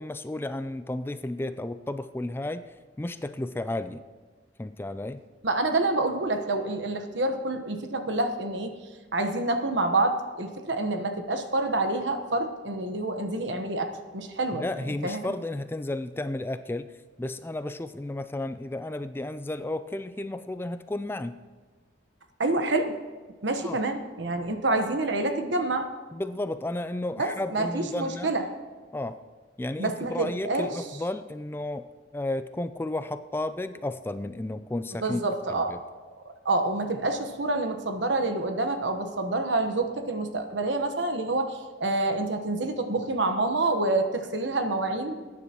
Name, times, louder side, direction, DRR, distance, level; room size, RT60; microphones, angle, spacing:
voice 1, 0.0-2.7 3.0-4.0 4.6-5.2 14.6-16.9 17.2-21.4 23.6-23.8 26.1-28.3 28.9-29.2 29.6-35.2 35.5-35.8, left 1 dB, 10° left, 11 dB, 0.3 m, -33 dB
voice 2, 5.4-8.8 9.1-14.6 15.0-15.3 22.4-22.9 23.4-25.9 27.2-28.4 29.8-30.8 35.0-35.8 36.4-45.2, right 2 dB, 80° right, 6 dB, 1.1 m, -27 dB
20.0 x 9.8 x 3.0 m, 1.4 s
head